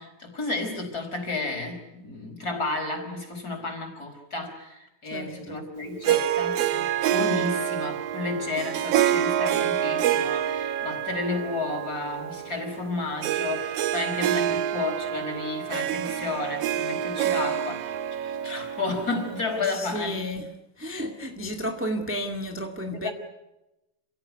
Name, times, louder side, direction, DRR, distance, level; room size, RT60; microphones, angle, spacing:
voice 1, 0.0-20.2 22.9-23.1, left 3 dB, 30° left, 5.1 m, -32 dB
voice 2, 5.1-5.6 14.3-14.6 19.7-23.1, equal, 5° right, 1.0 m, -33 dB
Harp, 6.0-19.7, right 10 dB, 65° right, 1.9 m, -27 dB
28.0 x 17.0 x 9.4 m
omnidirectional pair, 3.4 m